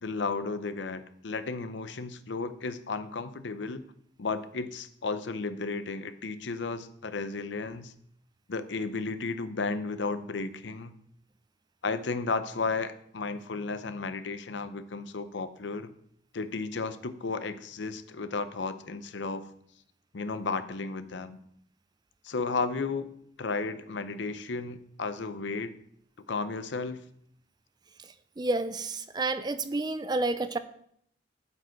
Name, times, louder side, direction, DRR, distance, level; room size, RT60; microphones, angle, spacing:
voice 1, 0.0-3.8 4.2-7.9 8.5-10.9 11.8-15.9 16.3-19.4 20.1-21.4 22.2-23.1 23.4-25.7 26.3-27.0, left 4 dB, 75° left, 11 dB, 0.7 m, -33 dB
voice 2, 28.4-30.6, right 2 dB, 20° right, 12 dB, 0.4 m, -30 dB
11.5 x 5.1 x 4.5 m, 0.67 s
head